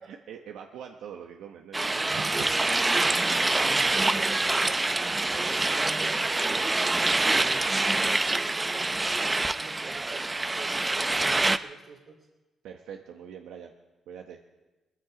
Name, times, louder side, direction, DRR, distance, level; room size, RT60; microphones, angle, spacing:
voice 1, 0.0-2.4 4.0-4.6 12.6-13.7 14.1-14.4, right 8 dB, 85° right, 3 dB, 1.0 m, -44 dB
sound 1, 1.7-11.6, right 2 dB, 20° right, 0.6 m, -26 dB
voice 2, 3.9-4.6 5.3-12.2, right 4 dB, 55° right, -1 dB, 2.5 m, -45 dB
19.0 x 14.5 x 5.0 m, 1.1 s
cardioid pair, 75°, 0 cm